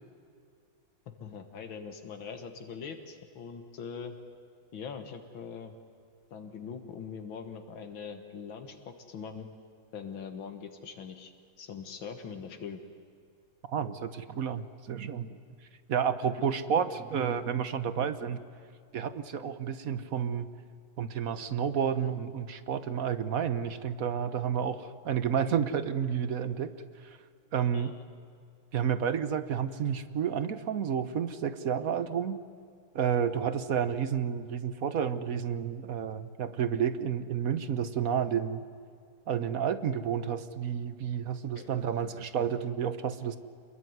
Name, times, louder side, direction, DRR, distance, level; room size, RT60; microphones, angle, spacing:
voice 1, 1.1-4.2 4.7-5.8 6.3-9.5 9.9-12.8 27.7-28.0 41.6-41.7, left 6 dB, 75° left, 7 dB, 2.2 m, -42 dB
voice 2, 13.7-15.3 15.9-18.4 18.9-20.5 21.0-26.7 27.5-27.9 28.7-32.4 32.9-38.6 39.3-43.4, right 8 dB, 55° right, 13 dB, 1.2 m, -30 dB
27.0 x 21.5 x 9.5 m, 2.3 s
omnidirectional pair, 2.2 m